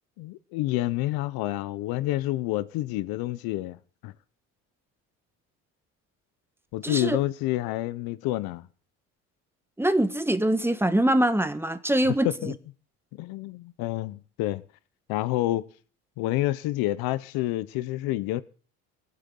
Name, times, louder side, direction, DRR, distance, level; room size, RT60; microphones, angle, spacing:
voice 1, 0.2-3.8 4.0-4.1 6.7-8.7 12.2-12.5 13.2-14.6 15.1-15.7 16.2-18.4, left 16 dB, 75° left, 1.1 m, -28 dB
voice 2, 6.8-7.2 9.8-12.5, right 1 dB, 5° right, 1.4 m, -24 dB
22.5 x 8.3 x 5.4 m
supercardioid pair, 85°, 37 cm